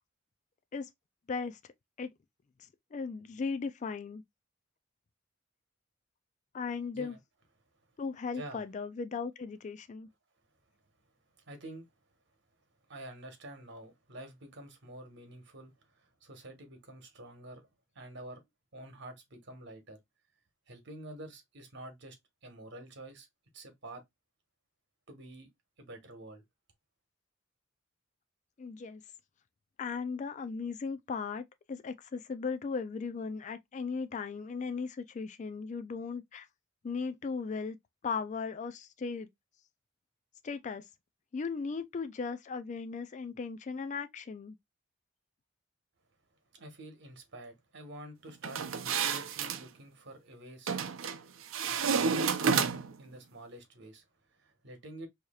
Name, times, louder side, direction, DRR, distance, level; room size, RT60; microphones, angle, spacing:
voice 1, 1.3-1.6 2.0-2.1 2.6-4.2 6.5-7.2 8.0-10.1 28.6-29.0 29.8-36.5 36.8-37.8 38.0-39.3 40.4-40.9 41.3-44.6, left 5 dB, 40° left, 0.3 m, -37 dB
voice 2, 11.4-11.9 12.9-17.7 17.9-18.4 18.7-20.0 20.7-22.2 22.4-23.3 23.5-24.0 25.1-25.5 25.8-26.4 46.5-50.9 51.9-55.1, right 1 dB, 60° right, 1.3 m, -48 dB
sound 1, 48.4-49.6 50.7-51.2 51.5-53.0, right 6 dB, 80° right, 0.6 m, -30 dB
4.7 x 2.9 x 2.3 m
head